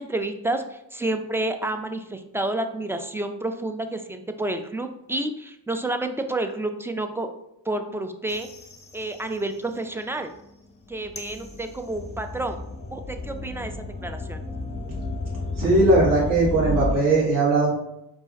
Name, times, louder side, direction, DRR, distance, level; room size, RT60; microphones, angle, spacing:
voice 1, 0.0-7.3 7.7-8.5 8.9-10.3 10.9-12.6 12.9-14.4, right 2 dB, 5° right, 6 dB, 0.3 m, -29 dB
sound 1, 8.3-9.9 10.3-16.9, left 3 dB, 15° left, 0.7 m, -32 dB
voice 2, 15.6-17.7, right 2 dB, 45° right, -6 dB, 1.7 m, -19 dB
4.6 x 2.5 x 4.0 m, 0.82 s
cardioid pair, 85°, 43 cm